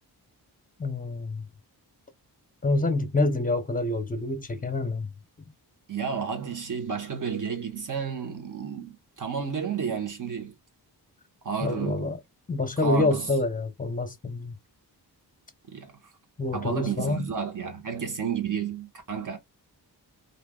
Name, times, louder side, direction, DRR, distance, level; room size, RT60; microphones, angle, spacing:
voice 1, 0.8-1.5 2.6-5.1 11.6-12.2 12.5-14.5 16.4-17.3, left 2 dB, 20° left, 0.7 m, -27 dB
voice 2, 5.9-10.5 11.4-12.1 12.8-13.3 15.7-15.9 16.5-19.4, right 6 dB, 50° right, 1.3 m, -31 dB
3.3 x 2.6 x 2.3 m
wide cardioid pair, 95°, 40 cm